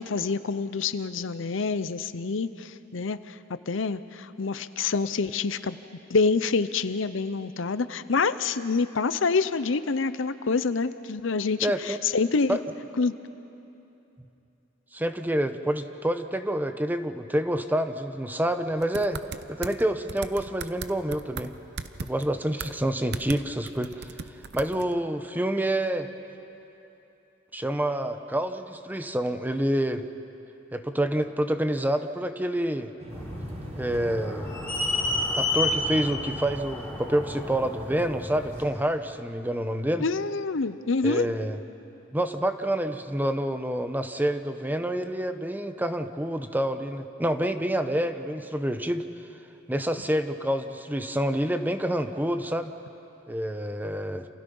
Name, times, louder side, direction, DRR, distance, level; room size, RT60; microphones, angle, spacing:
voice 1, 0.0-3.4 3.7-5.8 6.1-12.6 13.0-13.1 40.0-41.3, left 4 dB, 70° left, 13 dB, 0.7 m, -27 dB
voice 2, 11.6-12.0 12.5-12.6 14.9-19.2 19.5-21.5 22.0-24.1 24.5-26.1 27.5-30.1 30.7-32.9 33.7-34.5 35.4-40.0 41.0-41.6 42.1-49.0 49.7-52.7 53.3-54.3, right 1 dB, 10° right, 8 dB, 0.9 m, -27 dB
sound 1, 18.8-19.8 20.1-21.5 21.8-22.3 22.6-22.8 23.1-23.4 23.7-24.9, right 4 dB, 60° right, 0.9 m, -36 dB
sound 2, 33.0-36.9, right 1 dB, 30° right, 1.4 m, -45 dB
sound 3, 33.1-38.6, left 2 dB, 10° left, 7.4 m, -31 dB
29.0 x 28.0 x 5.5 m, 2.9 s
head